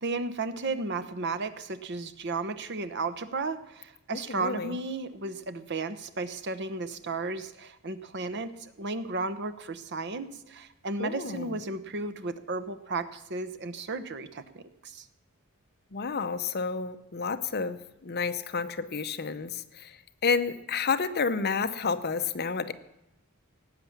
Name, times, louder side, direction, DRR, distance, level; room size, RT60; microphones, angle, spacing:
voice 1, 0.0-15.1, right 3 dB, 55° right, 12 dB, 0.9 m, -34 dB
voice 2, 4.1-4.8 11.0-11.6 15.9-22.7, left 5 dB, 50° left, 11 dB, 0.8 m, -30 dB
17.5 x 9.0 x 7.2 m, 0.87 s
head